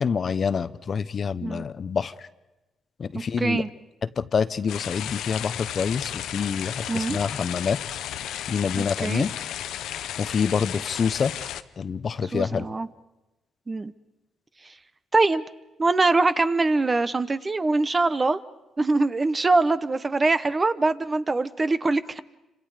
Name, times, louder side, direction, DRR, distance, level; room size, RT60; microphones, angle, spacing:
voice 1, 0.0-2.1 3.0-3.6 4.2-7.8 8.5-9.3 10.2-11.3 11.8-12.6, left 6 dB, 45° left, 14 dB, 0.8 m, -26 dB
voice 2, 3.4-3.7 6.9-7.2 8.8-9.2 12.3-12.9 13.7-13.9 15.1-15.4 15.8-18.4 18.8-22.2, right 3 dB, 25° right, 13 dB, 0.9 m, -23 dB
sound 1, 4.7-11.6, left 11 dB, 80° left, 0.8 m, -34 dB
29.0 x 26.0 x 5.0 m, 1.0 s
cardioid pair, 90°, 0 cm